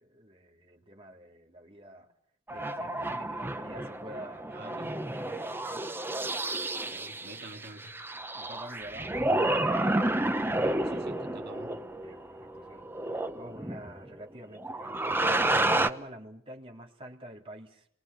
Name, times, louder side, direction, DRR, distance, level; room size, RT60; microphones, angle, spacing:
voice 1, 0.0-2.1 2.5-6.0 7.7-7.9 8.1-9.2 12.0-15.1 15.5-17.9, right 1 dB, 25° right, 3.5 m, -48 dB
sound 1, 2.5-14.1 14.6-15.9, right 1 dB, 10° right, 1.0 m, -30 dB
voice 2, 4.5-5.0 6.8-7.9 10.6-11.8, right 1 dB, 50° right, 2.6 m, -48 dB
29.0 x 23.0 x 7.0 m
head